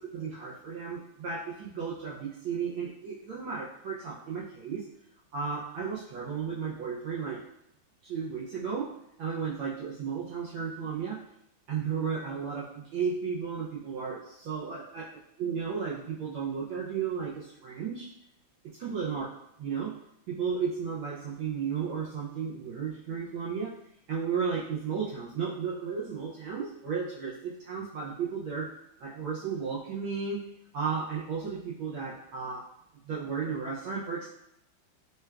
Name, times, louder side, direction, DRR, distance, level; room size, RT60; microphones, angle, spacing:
voice 1, 0.0-4.9 5.3-7.4 8.0-11.2 11.7-18.1 18.8-19.3 19.6-20.0 20.3-23.8 24.1-28.7 29.0-30.5 30.7-32.7 33.0-34.3, right 6 dB, 75° right, -5 dB, 1.3 m, -34 dB
6.3 x 2.3 x 2.2 m, 0.82 s
omnidirectional pair, 2.3 m